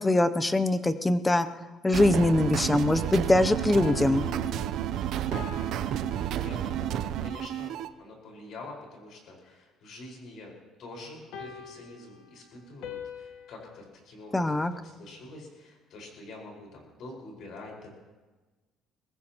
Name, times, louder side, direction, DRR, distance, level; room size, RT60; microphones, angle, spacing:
voice 1, 0.0-1.5 1.8-4.3 14.3-14.7, left 1 dB, 10° left, 10 dB, 0.6 m, -23 dB
sound 1, 1.9-7.9, right 11 dB, 55° right, 0.5 m, -31 dB
sound 2, 3.6-7.1 11.3-13.8, left 7 dB, 70° left, 1.3 m, -43 dB
voice 2, 6.0-10.5 10.8-17.9, left 2 dB, 50° left, 0 dB, 4.9 m, -46 dB
22.5 x 19.5 x 3.0 m, 1.2 s
cardioid pair, 165°, 0 cm